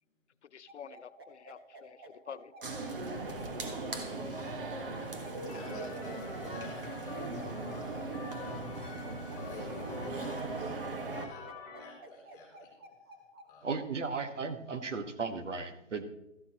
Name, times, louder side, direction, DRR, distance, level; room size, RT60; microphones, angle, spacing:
voice 1, 0.4-2.5, left 7 dB, 60° left, 15 dB, 0.6 m, -48 dB
sound 1, 0.7-13.5, right 1 dB, 20° right, 0.9 m, -53 dB
sound 2, 2.6-11.3, right 3 dB, 45° right, 1.5 m, -38 dB
voice 2, 4.1-4.6 4.9-8.0 8.4-8.8 9.3-11.4 11.8-12.7 13.5-13.7, left 2 dB, 10° left, -3 dB, 2.6 m, -51 dB
sound 3, 4.9-11.9, left 5 dB, 30° left, 1.8 m, -49 dB
voice 3, 13.6-16.0, right 4 dB, 65° right, 8 dB, 1.5 m, -35 dB
13.5 x 11.5 x 2.9 m, 0.90 s
hypercardioid pair, 160°, 38 cm